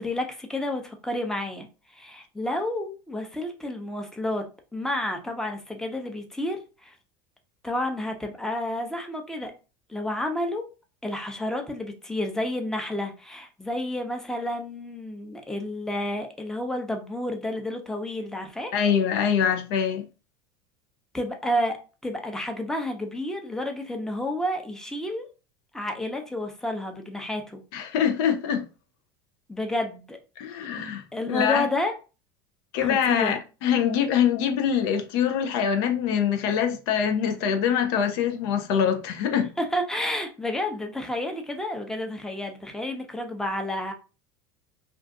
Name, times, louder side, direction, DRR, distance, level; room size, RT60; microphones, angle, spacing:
voice 1, 0.0-1.7 1.9-6.9 7.6-9.5 9.9-10.7 11.0-18.7 21.1-21.8 22.0-25.3 25.7-27.6 29.5-30.2 31.1-31.9 32.8-33.4 39.6-43.9, left 1 dB, 5° left, 0.7 m, -30 dB
voice 2, 18.7-20.1 27.7-28.6 30.4-31.7 32.7-39.5, left 8 dB, 70° left, 0.5 m, -24 dB
2.4 x 2.4 x 3.6 m
hypercardioid pair, 95°, 12 cm